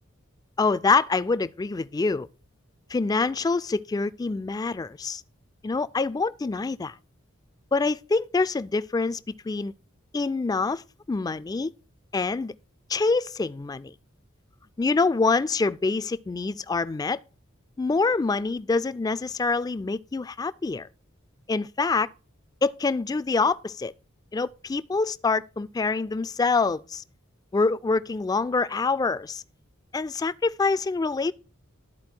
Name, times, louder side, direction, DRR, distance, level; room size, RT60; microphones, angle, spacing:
voice 1, 0.6-2.3 2.9-5.2 5.6-6.9 7.7-9.2 9.5-9.7 10.1-10.8 11.1-11.7 12.1-12.5 12.9-13.9 14.8-17.2 17.8-20.9 21.5-22.1 22.6-23.9 24.3-27.0 27.5-29.4 29.9-31.3, left 4 dB, 20° left, 0.3 m, -25 dB
12.0 x 4.4 x 4.4 m
head